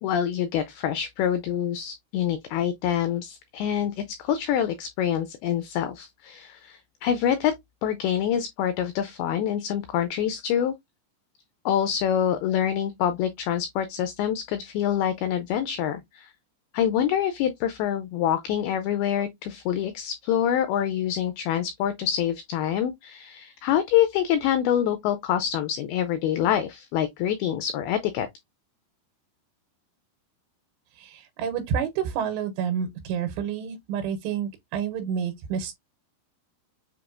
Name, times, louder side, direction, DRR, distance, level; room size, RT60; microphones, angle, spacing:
voice 1, 0.0-7.5 7.8-10.7 11.7-16.3 16.7-28.3, left 10 dB, 85° left, 2.2 m, -26 dB
voice 2, 30.9-35.7, right 8 dB, 90° right, 2.9 m, -29 dB
6.9 x 2.9 x 2.4 m
omnidirectional pair, 4.9 m